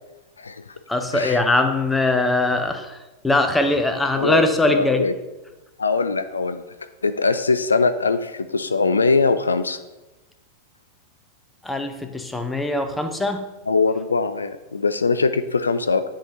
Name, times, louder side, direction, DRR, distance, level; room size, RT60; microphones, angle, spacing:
voice 1, 0.4-0.8 1.1-1.4 4.2-5.1 5.8-6.6 7.0-9.8 13.7-16.0, left 4 dB, 75° left, 11 dB, 0.3 m, -22 dB
voice 2, 0.9-3.0 3.2-5.0 11.6-13.5, left 2 dB, 5° left, 7 dB, 0.6 m, -21 dB
10.0 x 3.7 x 3.0 m, 1.1 s
figure-of-eight pair, 90°, 0 cm